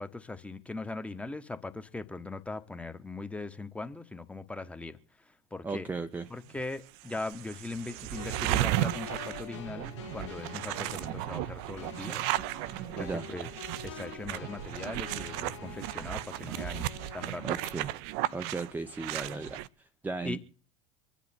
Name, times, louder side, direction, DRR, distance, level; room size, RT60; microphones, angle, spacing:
voice 1, 0.0-5.0 5.5-5.9 6.3-12.3 12.9-13.5 13.8-16.9 17.1-17.6 20.2-20.4, left 3 dB, 10° left, 1.3 m, -40 dB
voice 2, 5.6-6.3 13.0-13.3 17.4-17.9 18.3-20.4, right 3 dB, 10° right, 0.7 m, -36 dB
sound 1, 6.5-6.6 7.0-19.7, right 15 dB, 55° right, 0.7 m, -35 dB
sound 2, 8.2-17.8, left 9 dB, 65° left, 1.2 m, -47 dB
25.0 x 10.5 x 4.3 m
figure-of-eight pair, 75°, 16 cm